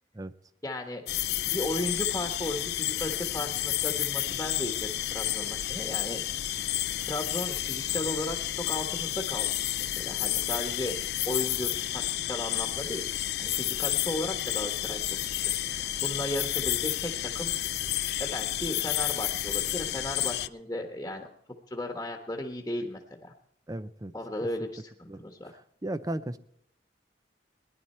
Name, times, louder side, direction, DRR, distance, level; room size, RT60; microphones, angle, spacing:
voice 1, 0.6-1.0 1.4-6.2 7.1-10.9 11.2-13.1 13.4-15.0 15.2-17.5 18.2-21.3 21.7-23.3 24.1-24.9 25.2-25.5, left 1 dB, 15° left, 2 dB, 1.3 m, -35 dB
sound 1, 1.1-20.5, left 14 dB, 65° left, 0.4 m, -31 dB
voice 2, 23.7-24.1 25.1-25.2 25.8-26.4, right 1 dB, 20° right, 14 dB, 0.6 m, -34 dB
18.5 x 11.0 x 4.4 m, 0.75 s
head